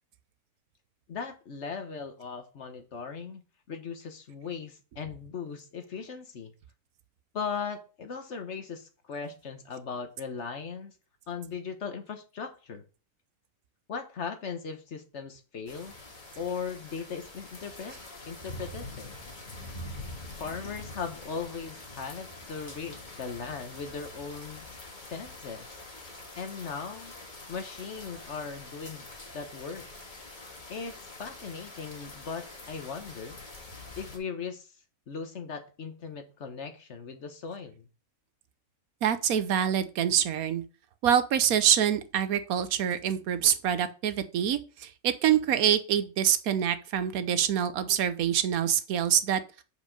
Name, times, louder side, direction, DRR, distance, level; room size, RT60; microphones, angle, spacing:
voice 1, 1.1-3.4 3.7-6.5 7.3-10.9 11.3-12.8 13.9-15.9 16.4-18.0 18.3-19.1 20.4-24.7 25.1-25.7 26.4-27.1 27.5-29.1 29.3-29.9 30.7-33.4 34.0-34.7 35.1-37.8, left 5 dB, 55° left, 7 dB, 1.3 m, -38 dB
sound 1, 15.7-34.2, left 2 dB, 35° left, 1.5 m, -45 dB
voice 2, 39.0-40.6 41.0-49.4, right 9 dB, 80° right, 12 dB, 1.2 m, -25 dB
7.2 x 5.2 x 5.1 m, 0.35 s
omnidirectional pair, 1.5 m